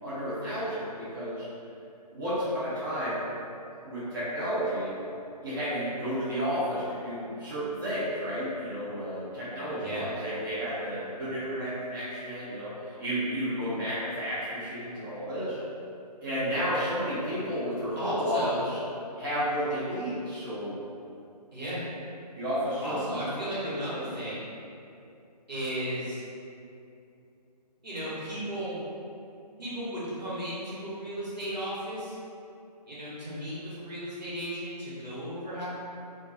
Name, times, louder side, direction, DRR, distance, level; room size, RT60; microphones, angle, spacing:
voice 1, 0.0-1.5 2.1-3.2 3.8-4.9 5.4-15.6 16.2-18.8 19.2-20.8 22.4-23.5, equal, 35° right, -12 dB, 0.6 m, -32 dB
voice 2, 18.0-18.6 21.5-21.8 22.8-24.5 25.5-26.2 27.8-28.8 29.6-32.2 32.8-35.7, equal, 85° right, -9 dB, 1.1 m, -35 dB
2.3 x 2.2 x 2.6 m, 2.6 s
figure-of-eight pair, 145°, 21 cm